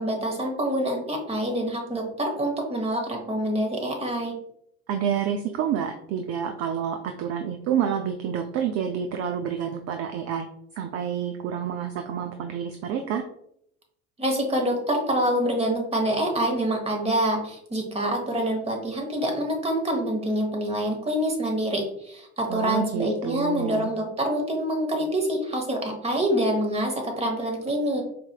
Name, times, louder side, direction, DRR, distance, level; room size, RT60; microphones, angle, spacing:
voice 1, 0.0-4.3 14.2-28.0, right 1 dB, 15° right, 2 dB, 1.2 m, -26 dB
voice 2, 4.9-10.5 10.8-13.2 22.5-23.9, right 8 dB, 40° right, 6 dB, 0.4 m, -28 dB
4.5 x 3.3 x 2.4 m, 0.73 s
hypercardioid pair, 70°, 40 cm